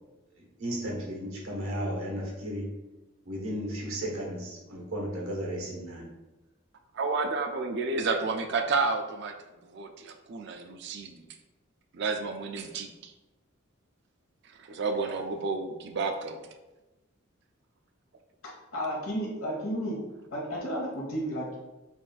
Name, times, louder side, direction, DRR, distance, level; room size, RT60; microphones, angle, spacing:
voice 1, 0.6-2.8 3.3-6.0, equal, 90° right, -2 dB, 1.1 m, -34 dB
voice 2, 6.9-9.3 9.6-11.2 11.9-13.1 14.6-16.4, right 4 dB, 55° right, 5 dB, 0.3 m, -31 dB
voice 3, 18.7-20.0 20.3-21.6, equal, 90° left, -3 dB, 1.3 m, -32 dB
5.9 x 2.5 x 2.3 m, 1.1 s
head